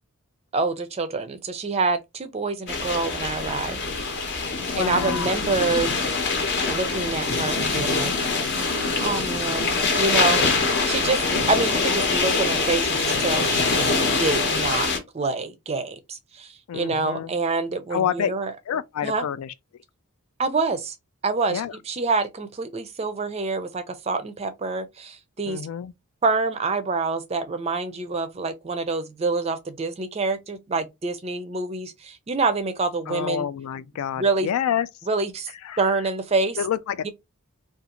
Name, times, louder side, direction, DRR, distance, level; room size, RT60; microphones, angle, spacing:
voice 1, 0.5-3.8 4.8-5.9 6.7-8.1 9.0-10.4 10.8-11.2 11.5-13.9 14.2-18.5 19.0-19.3 20.4-21.0 21.2-21.6 21.9-25.6 26.2-33.5 34.2-34.5 35.1-35.5 35.8-36.6 37.0-37.1, right 3 dB, 30° right, 0.4 m, -26 dB
sound 1, 2.7-15.0, left 4 dB, 50° left, 0.8 m, -24 dB
voice 2, 4.6-5.6 16.7-17.3 17.9-18.3 18.7-19.5 21.5-21.8 25.4-25.9 33.1-34.9 35.6-35.8 36.6-37.1, left 9 dB, 75° left, 0.3 m, -28 dB
2.5 x 2.4 x 2.8 m
head